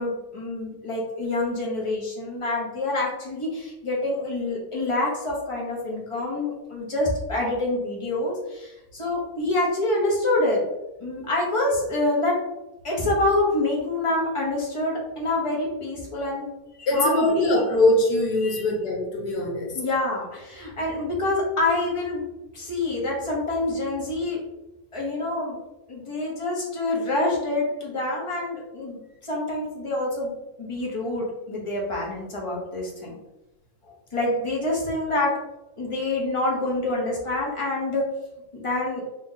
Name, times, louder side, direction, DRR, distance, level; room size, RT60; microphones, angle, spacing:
voice 1, 0.0-10.6 11.0-12.4 12.8-16.5 16.8-17.5 18.4-18.6 19.7-22.2 22.5-24.4 24.9-25.6 25.9-33.2 34.1-35.3 35.8-38.1 38.5-39.0, left 2 dB, 25° left, -3 dB, 0.8 m, -26 dB
voice 2, 16.9-19.8, left 1 dB, 80° left, 0 dB, 1.4 m, -22 dB
3.0 x 2.8 x 3.7 m, 0.98 s
omnidirectional pair, 1.7 m